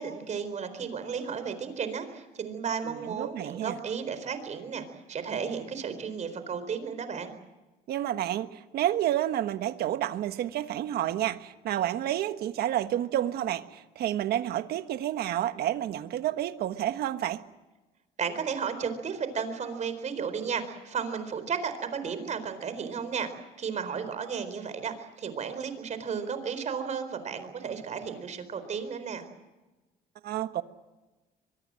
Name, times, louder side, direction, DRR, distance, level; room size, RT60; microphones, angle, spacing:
voice 1, 0.0-7.3 18.2-23.3 23.6-29.2, right 6 dB, 45° right, 10 dB, 4.3 m, -34 dB
voice 2, 2.8-3.8 7.9-17.4 30.2-30.6, right 12 dB, 70° right, 10 dB, 1.4 m, -30 dB
23.5 x 22.5 x 7.7 m, 1.1 s
cardioid pair, 110°, 17 cm